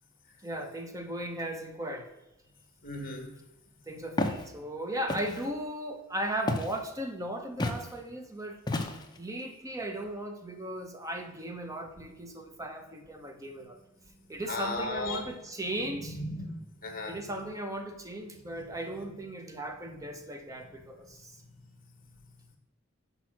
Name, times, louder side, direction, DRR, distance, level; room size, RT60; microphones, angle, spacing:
voice 1, 0.4-2.1 3.9-8.6 9.2-13.8 14.3-16.2 17.1-21.4, right 1 dB, 15° right, 5 dB, 0.8 m, -37 dB
voice 2, 2.8-3.3 14.5-15.2 16.1-17.1, left 2 dB, 45° left, 3 dB, 1.5 m, -36 dB
Walk footsteps, 4.2-4.4 5.1-5.5 6.5-6.8 7.6-7.8 8.7-9.2, left 2 dB, 20° left, 0.7 m, -31 dB
6.1 x 5.2 x 6.0 m, 0.96 s
head